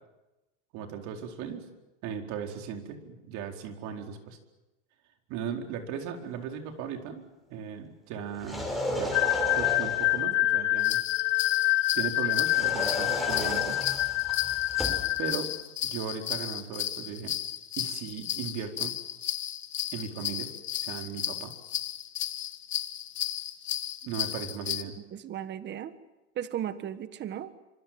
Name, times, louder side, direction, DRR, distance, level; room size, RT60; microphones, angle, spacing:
voice 1, 0.7-1.7 2.0-4.4 5.3-7.2 7.5-9.1 9.4-11.0 11.9-13.8 15.2-15.5 15.8-17.4 17.8-18.9 19.9-20.5 20.8-21.5 24.0-25.0, right 7 dB, 50° right, 4 dB, 4.4 m, -37 dB
sound 1, 8.3-10.2 12.4-15.1, left 1 dB, ahead, 5.9 m, -34 dB
sound 2, 9.1-15.3, left 19 dB, 75° left, 1.8 m, -27 dB
sound 3, 10.8-24.8, left 12 dB, 30° left, 1.4 m, -34 dB
voice 2, 25.1-25.9 26.3-27.5, right 10 dB, 30° right, 12 dB, 1.6 m, -35 dB
27.0 x 25.5 x 7.7 m, 1.0 s
supercardioid pair, 140°, 36 cm